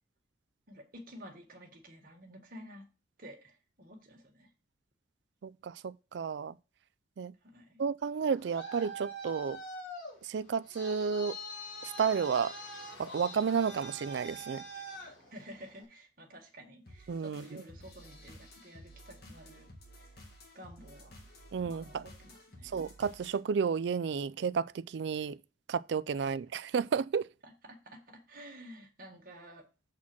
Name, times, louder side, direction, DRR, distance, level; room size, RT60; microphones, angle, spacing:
voice 1, 0.7-2.9 3.2-4.5 7.4-7.8 15.3-20.1 20.5-21.3 21.6-22.7 26.2-26.3 27.4-29.7, equal, 50° right, 1.8 m, -51 dB
voice 2, 5.4-6.6 7.2-7.3 7.8-9.6 10.2-11.4 11.8-12.5 13.0-14.6 17.1-17.6 21.5-22.1 22.6-25.4 25.7-27.3, right 6 dB, 65° right, 0.3 m, -32 dB
Traffic noise roadway noise, 8.1-15.8, right 1 dB, 85° left, 3.8 m, -45 dB
sound 1, 16.9-23.4, equal, 55° left, 1.6 m, -53 dB
7.3 x 4.2 x 6.1 m
head